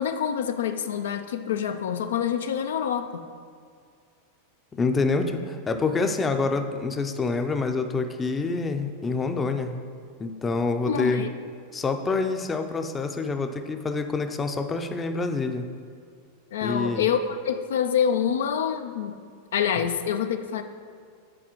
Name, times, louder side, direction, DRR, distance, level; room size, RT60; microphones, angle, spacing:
voice 1, 0.0-3.1 10.8-11.3 16.5-19.1 19.5-20.6, left 8 dB, 80° left, 8 dB, 0.3 m, -26 dB
voice 2, 4.7-9.8 10.2-11.3 11.7-15.7 16.6-17.1, left 3 dB, 20° left, 6 dB, 0.5 m, -27 dB
9.8 x 4.0 x 3.0 m, 2.2 s
hypercardioid pair, 110°, 0 cm